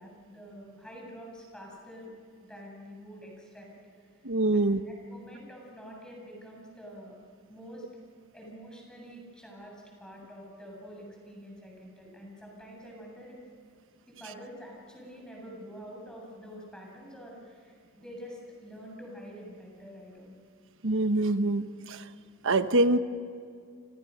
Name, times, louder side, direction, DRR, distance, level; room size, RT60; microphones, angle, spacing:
voice 1, 0.0-2.1 2.4-3.7 4.0-7.1 7.5-7.8 8.3-13.4 14.1-20.3, equal, 5° left, -2 dB, 7.8 m, -47 dB
voice 2, 4.2-4.8 20.8-22.1 22.4-23.0, right 2 dB, 65° right, 10 dB, 1.2 m, -25 dB
29.0 x 28.5 x 6.6 m, 2.3 s
head